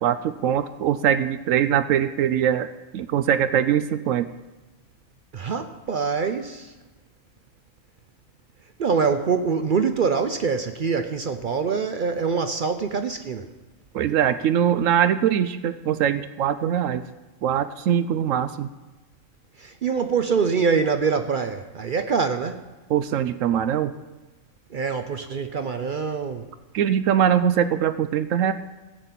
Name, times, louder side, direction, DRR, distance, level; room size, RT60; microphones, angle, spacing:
voice 1, 0.0-4.3 13.9-17.0 17.4-18.7 22.9-23.9 26.7-28.5, right 9 dB, 75° right, 0.9 m, -22 dB
voice 2, 5.3-6.7 8.8-13.5 19.6-22.7 24.7-26.5, right 5 dB, 60° right, 0.5 m, -24 dB
15.0 x 5.8 x 8.2 m
omnidirectional pair, 1.4 m